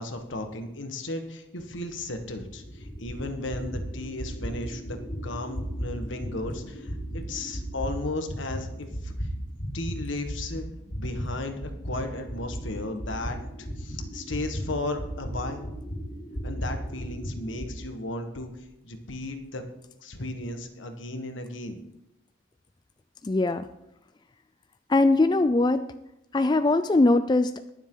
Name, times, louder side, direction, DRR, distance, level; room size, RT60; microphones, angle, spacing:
voice 1, 0.0-5.0 5.2-9.1 9.7-10.6 11.0-11.6 11.8-13.4 13.8-15.7 16.4-18.5 18.8-19.6 20.0-21.8, left 2 dB, 75° left, 6 dB, 1.5 m, -35 dB
sound 1, 1.9-10.0 10.3-17.7, equal, 50° left, 5.2 m, -36 dB
voice 2, 23.2-23.7 24.9-25.8 26.3-27.7, left 2 dB, 20° left, 10 dB, 0.4 m, -21 dB
21.5 x 7.3 x 3.9 m, 0.84 s
head